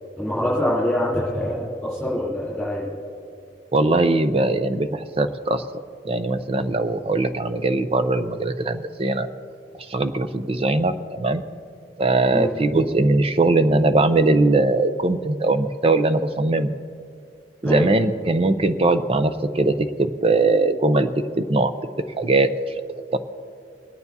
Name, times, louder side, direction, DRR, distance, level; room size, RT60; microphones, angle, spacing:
voice 1, 0.2-2.9 12.3-12.6 17.6-17.9, left 1 dB, ahead, -10 dB, 3.6 m, -24 dB
voice 2, 3.7-5.6 6.0-9.3 9.9-11.4 12.0-16.7 17.6-19.9 20.2-21.1 21.4-21.7 22.2-22.5 23.1-23.2, right 2 dB, 30° right, 9 dB, 0.5 m, -20 dB
28.0 x 9.4 x 2.8 m, 2.4 s
head